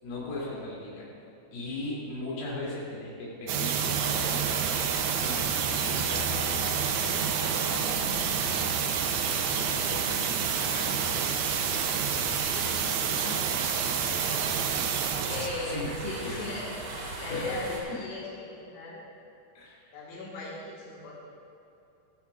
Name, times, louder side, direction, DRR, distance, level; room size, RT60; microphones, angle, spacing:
voice 1, 0.0-1.1 1.5-6.3 6.8-8.7 9.5-11.4 12.1-13.4 15.6-15.9 16.2-16.5 17.3-18.1 19.5-20.0, left 2 dB, 55° left, -6 dB, 4.4 m, -39 dB
sound 1, 3.5-15.5, right 8 dB, 90° right, 2.1 m, -28 dB
sound 2, 3.7-17.8, right 1 dB, 50° right, 3.1 m, -38 dB
voice 2, 14.1-14.7 15.3-16.8 17.2-19.0 19.9-21.1, left 2 dB, 85° left, -5 dB, 3.9 m, -37 dB
15.0 x 12.0 x 2.4 m, 2.9 s
omnidirectional pair, 5.3 m